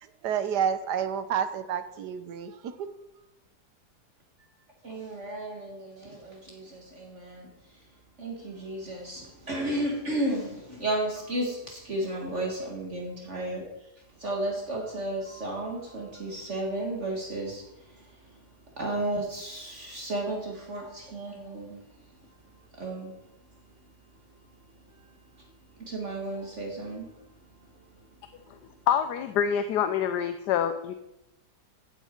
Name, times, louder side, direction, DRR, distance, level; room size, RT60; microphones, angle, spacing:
voice 1, 0.0-2.9, right 8 dB, 80° right, 11 dB, 1.5 m, -30 dB
voice 2, 4.8-7.5 8.2-13.7 14.2-17.6 18.8-21.8 22.8-23.2 25.8-27.1, right 1 dB, 45° right, -1 dB, 1.9 m, -33 dB
voice 3, 28.9-30.9, left 8 dB, 85° left, 9 dB, 1.2 m, -26 dB
15.5 x 8.1 x 4.4 m, 0.91 s
omnidirectional pair, 1.7 m